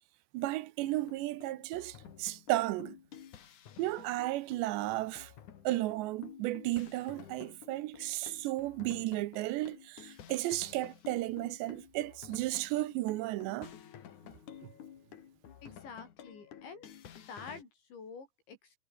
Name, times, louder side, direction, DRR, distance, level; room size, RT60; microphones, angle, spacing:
voice 1, 0.3-3.0 3.8-5.3 5.6-13.7, right 17 dB, 80° right, 3.0 m, -34 dB
sound 1, 0.8-17.6, left 9 dB, 50° left, 2.9 m, -52 dB
voice 2, 15.6-16.9 17.3-18.6, left 5 dB, 80° left, 9.3 m, -48 dB
omnidirectional pair, 5.1 m